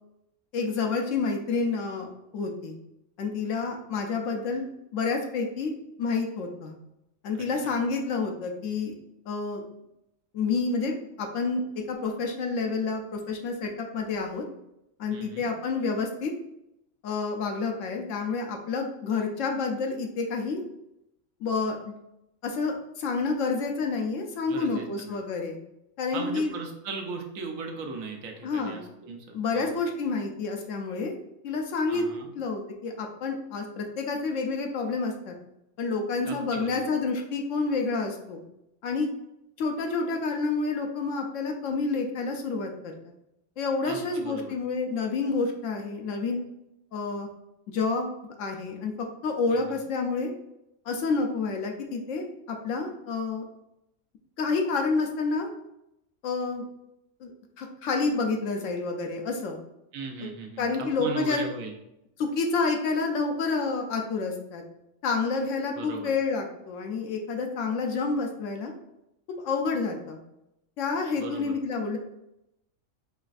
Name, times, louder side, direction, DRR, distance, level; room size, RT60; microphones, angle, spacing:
voice 1, 0.5-2.1 2.3-2.8 3.2-5.7 6.0-6.7 7.2-8.9 9.3-9.6 10.3-10.9 11.2-14.4 15.0-16.3 17.0-20.6 21.4-21.9 22.4-25.6 26.0-26.5 28.4-28.8 29.3-31.1 31.4-32.1 32.3-35.3 35.8-38.4 38.8-39.1 39.6-43.0 43.6-46.5 46.9-47.3 47.7-48.1 48.4-50.3 50.9-53.4 54.4-55.5 56.2-56.6 57.2-57.3 57.6-59.6 60.6-61.5 62.2-64.6 65.0-68.7 69.4-70.2 70.8-72.0, left 4 dB, 70° left, 2 dB, 0.9 m, -29 dB
voice 2, 15.1-15.5 24.5-25.2 26.1-29.8 31.9-32.3 36.2-36.9 43.8-44.6 49.5-49.8 59.9-61.7 65.7-66.1 71.2-71.5, right 4 dB, 80° right, 3 dB, 1.0 m, -38 dB
4.0 x 3.0 x 2.5 m, 0.84 s
omnidirectional pair, 1.4 m